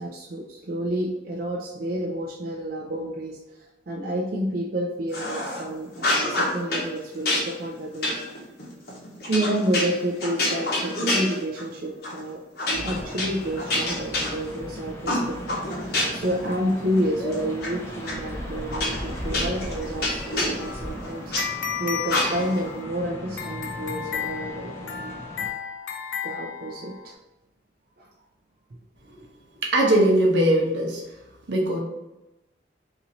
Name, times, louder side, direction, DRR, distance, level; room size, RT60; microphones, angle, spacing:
voice 1, 0.0-8.2 9.2-12.4 12.8-15.6 16.1-21.3 21.8-25.3 26.2-27.2 28.0-28.1, equal, 50° right, -2 dB, 0.4 m, -29 dB
sound 1, 5.1-5.6 6.0-6.9 7.3-11.7 12.0-12.2 12.6-14.7 15.1-16.3 16.7-17.7 18.1-18.2 18.7-21.4 22.1-22.6, left 1 dB, 55° left, 1.0 m, -27 dB
sound 2, 12.7-25.5, equal, 15° left, 0.5 m, -37 dB
sound 3, 20.6-27.1, left 8 dB, 90° left, 0.5 m, -34 dB
voice 2, 29.6-31.0 31.5-31.8, right 1 dB, 75° right, 0 dB, 0.9 m, -20 dB
3.0 x 2.7 x 3.9 m, 0.97 s
head